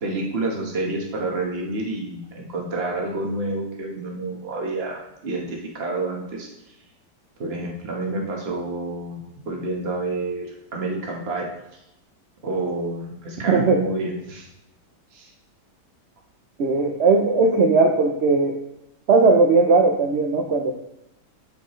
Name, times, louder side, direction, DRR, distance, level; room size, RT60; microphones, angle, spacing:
voice 1, 0.0-6.5 7.4-11.5 12.4-14.5 15.1-15.3, right 2 dB, 40° right, -1 dB, 1.4 m, -29 dB
voice 2, 13.5-13.8 16.6-18.6 19.1-20.7, right 3 dB, 60° right, 2 dB, 0.7 m, -18 dB
12.0 x 4.4 x 3.1 m, 0.85 s
omnidirectional pair, 1.8 m